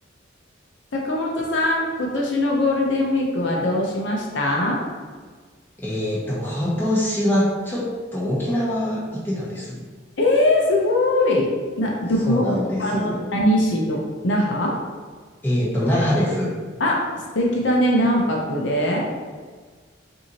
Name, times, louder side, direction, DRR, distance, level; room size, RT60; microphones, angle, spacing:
voice 1, 0.9-4.8 10.2-11.5 11.8-14.7 16.8-17.0 17.3-19.1, left 1 dB, 65° left, -1 dB, 0.7 m, -21 dB
voice 2, 5.8-9.8 12.2-13.2 15.4-16.5, equal, 10° left, -7 dB, 1.0 m, -23 dB
5.7 x 2.7 x 2.8 m, 1.5 s
head